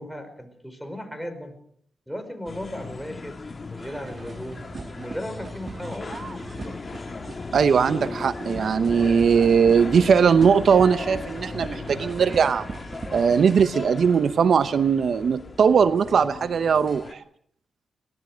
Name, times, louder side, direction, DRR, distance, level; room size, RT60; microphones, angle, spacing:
voice 1, 0.0-1.6 2.1-3.4 3.7-4.6 5.0-6.1, equal, ahead, 9 dB, 5.3 m, -36 dB
sound 1, 2.5-17.1, left 3 dB, 40° left, 1.5 m, -37 dB
sound 2, 3.8-13.6, right 4 dB, 50° right, 1.4 m, -39 dB
voice 2, 7.5-12.7 13.1-17.2, right 6 dB, 70° right, 13 dB, 0.8 m, -19 dB
23.5 x 18.0 x 6.3 m, 0.64 s
cardioid pair, 65°, 0 cm